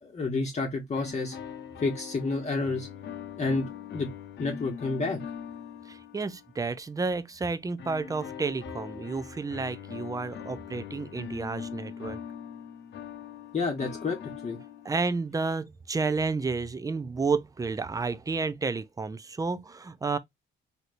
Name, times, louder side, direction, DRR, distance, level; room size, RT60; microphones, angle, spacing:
voice 1, 0.0-1.4 1.8-2.9 3.4-3.7 3.9-4.1 4.4-5.2 13.5-14.6, left 3 dB, 35° left, 1.0 m, -29 dB
sound 1, 0.9-6.7 7.8-15.2, left 8 dB, 60° left, 0.7 m, -42 dB
voice 2, 5.9-12.2 14.8-20.2, right 4 dB, 15° right, 0.4 m, -31 dB
3.2 x 2.8 x 2.5 m
cardioid pair, 90°, 20 cm